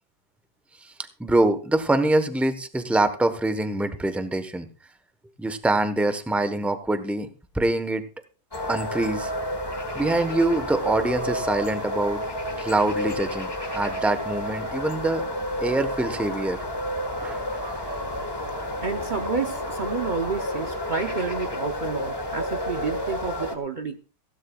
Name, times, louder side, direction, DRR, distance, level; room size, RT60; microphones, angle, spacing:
voice 1, 1.2-4.7 5.4-8.1 8.7-9.3 9.9-12.2 12.6-15.2 15.6-16.6 17.2-17.6, right 2 dB, ahead, 9 dB, 0.6 m, -24 dB
sound 1, 8.5-23.6, equal, 15° left, 1.3 m, -30 dB
voice 2, 18.8-24.0, right 4 dB, 85° right, 5 dB, 0.4 m, -30 dB
19.0 x 16.5 x 2.4 m, 0.35 s
omnidirectional pair, 2.0 m